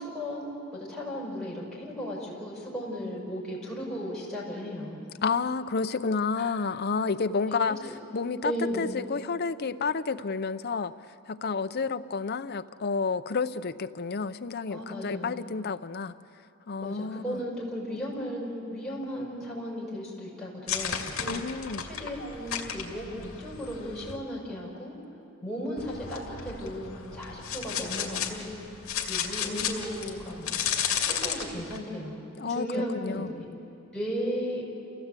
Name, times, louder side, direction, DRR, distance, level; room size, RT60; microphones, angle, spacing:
voice 1, 0.0-5.1 6.4-6.5 7.4-7.8 8.4-9.0 14.7-15.4 16.8-21.4 21.8-25.0 25.4-28.5 29.1-30.6 30.9-33.5 33.9-34.6, equal, 5° left, -6 dB, 6.2 m, -35 dB
voice 2, 5.2-7.8 8.1-8.5 8.8-10.9 11.3-16.1 16.7-17.4 21.2-21.9 32.4-33.3, left 4 dB, 50° left, 11 dB, 0.6 m, -30 dB
sound 1, 20.7-24.2 25.8-31.8, left 8 dB, 70° left, 2.4 m, -34 dB
28.5 x 16.0 x 8.2 m, 2.7 s
head